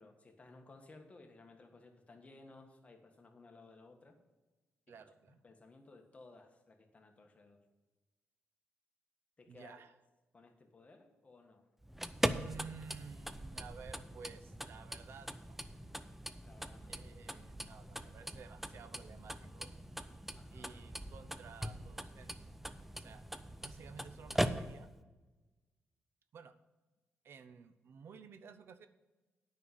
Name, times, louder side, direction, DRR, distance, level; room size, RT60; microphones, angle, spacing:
voice 1, 0.0-4.2 5.3-7.6 9.4-9.7 10.3-11.6 16.4-17.0 20.3-20.8, left 3 dB, 30° left, 4 dB, 1.5 m, -58 dB
voice 2, 4.9-5.4 9.5-9.9 12.3-15.6 16.9-19.7 20.5-22.3 23.0-23.2 23.6-24.9 26.3-26.5 27.2-28.9, right 6 dB, 65° right, 11 dB, 0.7 m, -53 dB
sound 1, 11.8-25.0, right 1 dB, 5° right, 0.5 m, -41 dB
9.0 x 5.7 x 7.8 m, 1.2 s
cardioid pair, 85°, 4 cm